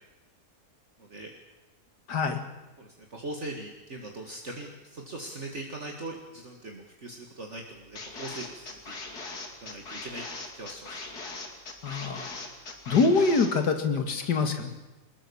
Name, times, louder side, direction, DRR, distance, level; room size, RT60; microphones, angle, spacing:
voice 1, 2.1-2.4 11.8-12.3 12.9-14.7, left 4 dB, 90° left, 7 dB, 2.7 m, -25 dB
voice 2, 2.8-9.0 9.6-10.2 10.5-11.0, right 2 dB, 45° right, 2 dB, 2.2 m, -40 dB
sound 1, 8.0-13.5, left 3 dB, 70° left, 3.1 m, -40 dB
23.0 x 20.0 x 7.1 m, 1.1 s
omnidirectional pair, 1.7 m